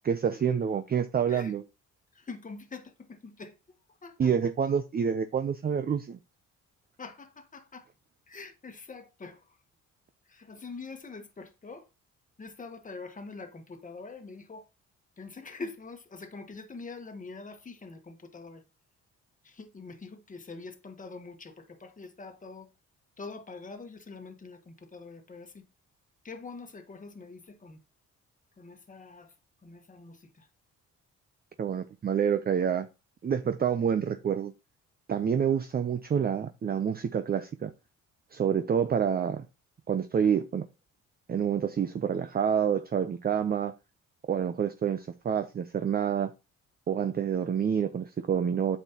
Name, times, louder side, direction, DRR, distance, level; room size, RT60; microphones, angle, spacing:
voice 1, 0.0-1.6 4.2-6.2 31.6-32.9 33.2-34.5 35.1-37.7 38.3-39.4 39.9-40.6 41.3-43.7 44.3-46.3 46.9-48.8, right 7 dB, 30° right, 0.5 m, -28 dB
voice 2, 2.1-3.6 4.0-4.5 7.0-7.9 8.3-9.4 10.3-11.9 12.4-14.6 15.2-18.6 19.4-22.7 23.2-25.6 26.2-27.8 28.6-29.3 29.6-30.5, left 4 dB, 25° left, 1.2 m, -44 dB
8.7 x 6.4 x 2.9 m
cardioid pair, 90°, 30 cm